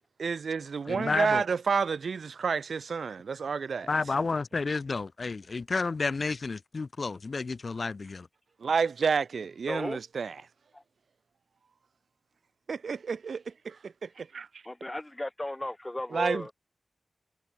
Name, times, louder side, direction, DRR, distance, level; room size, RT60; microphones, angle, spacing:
voice 1, 0.2-3.9 8.6-10.4 12.7-14.5 16.1-16.5, right 5 dB, 85° right, 3.0 m, -30 dB
voice 2, 0.8-1.4 3.9-8.3, left 4 dB, 55° left, 6.7 m, -31 dB
voice 3, 9.7-10.0 10.7-10.8 14.7-16.5, left 1 dB, 15° left, 7.1 m, -35 dB
wide cardioid pair, 95°, 0 cm